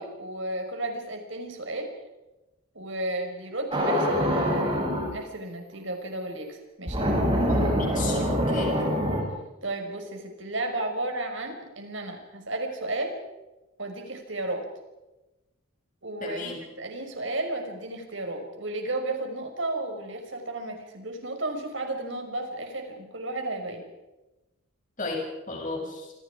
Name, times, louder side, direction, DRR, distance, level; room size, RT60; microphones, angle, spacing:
voice 1, 0.0-1.9 2.7-7.1 9.6-13.2 13.8-14.6 16.0-23.8, right 2 dB, 65° right, 4 dB, 5.5 m, -33 dB
sound 1, 3.7-5.1 6.9-9.2, equal, 25° right, 7.4 m, -25 dB
voice 2, 7.5-8.7 16.2-16.6 25.0-26.1, left 3 dB, 40° left, 1 dB, 7.1 m, -34 dB
27.5 x 26.5 x 5.0 m, 1.0 s
head